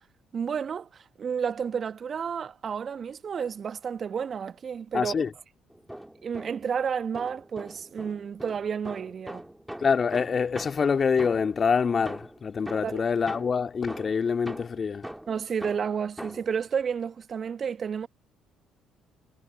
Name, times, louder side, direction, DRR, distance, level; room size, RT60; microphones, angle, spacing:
voice 1, 0.3-5.2 6.2-9.5 12.8-13.0 15.3-18.1, right 7 dB, 45° right, 1.5 m, -31 dB
voice 2, 4.9-5.3 9.8-15.1, left 6 dB, 40° left, 2.4 m, -25 dB
sound 1, 5.7-6.8 7.1-11.7 12.1-16.6, right 1 dB, 5° right, 3.4 m, -42 dB
figure-of-eight pair, 50°, 0 cm